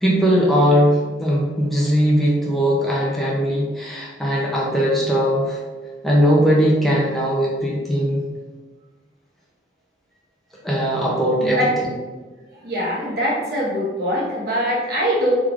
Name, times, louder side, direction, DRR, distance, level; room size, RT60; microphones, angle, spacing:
voice 1, 0.0-5.6 6.0-8.2 10.6-11.6, equal, ahead, -5 dB, 0.5 m, -19 dB
voice 2, 12.6-15.4, equal, 55° right, -5 dB, 1.0 m, -22 dB
3.6 x 3.1 x 2.4 m, 1.3 s
head